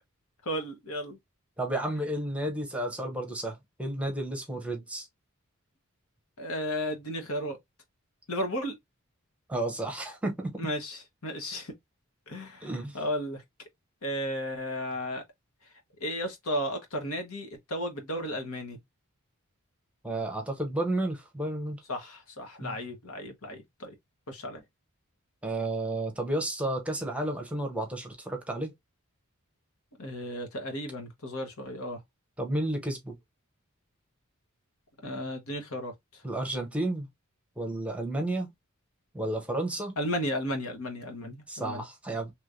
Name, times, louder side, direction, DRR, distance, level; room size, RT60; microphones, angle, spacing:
voice 1, 0.4-1.2 6.4-7.6 8.3-8.7 10.6-11.7 12.3-13.4 14.0-15.2 16.0-18.8 21.9-23.9 24.3-24.6 30.0-32.0 35.0-36.2 40.0-41.8, equal, 80° left, 1.2 m, -34 dB
voice 2, 1.6-5.1 9.5-10.6 12.6-13.0 20.0-21.8 22.6-22.8 25.4-28.7 32.4-33.2 36.2-37.1 37.6-38.5 39.1-39.9 41.5-42.3, right 1 dB, 5° right, 0.8 m, -32 dB
3.2 x 3.0 x 2.5 m
head